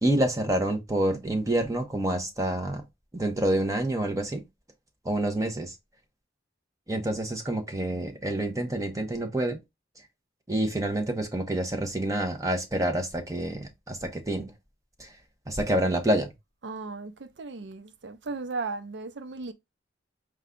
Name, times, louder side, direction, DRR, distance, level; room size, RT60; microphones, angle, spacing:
voice 1, 0.0-2.8 3.1-4.4 5.0-5.7 6.9-9.6 10.5-14.5 15.0-15.1 15.5-16.3, right 1 dB, 20° right, 0.7 m, -27 dB
voice 2, 16.6-19.5, right 3 dB, 70° right, 0.5 m, -36 dB
4.8 x 2.2 x 3.6 m
head